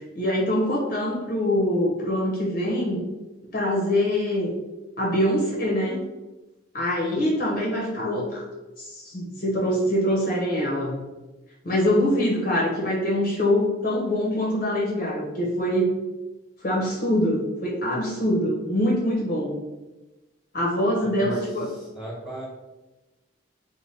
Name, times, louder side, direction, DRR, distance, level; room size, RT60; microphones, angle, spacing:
voice 1, 0.1-3.0 3.5-4.5 5.0-6.0 6.7-8.4 8.8-11.0 11.6-15.9 16.6-19.5 20.5-21.7, left 1 dB, 45° left, -2 dB, 0.6 m, -24 dB
voice 2, 21.0-22.5, right 1 dB, ahead, -6 dB, 1.1 m, -37 dB
3.3 x 2.1 x 3.9 m, 1.1 s
head